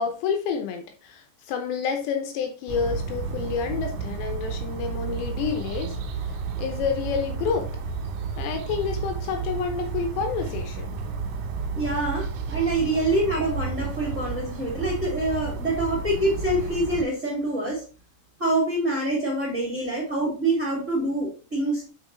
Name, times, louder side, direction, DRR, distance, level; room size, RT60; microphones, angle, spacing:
voice 1, 0.0-5.9 6.6-7.7 8.4-10.9, left 6 dB, 75° left, 5 dB, 2.9 m, -29 dB
sound 1, 2.7-17.0, right 5 dB, 80° right, 3.3 m, -32 dB
voice 2, 11.7-17.8 18.4-21.8, right 1 dB, 25° right, -5 dB, 1.9 m, -26 dB
6.2 x 5.7 x 3.2 m, 0.34 s
omnidirectional pair, 5.3 m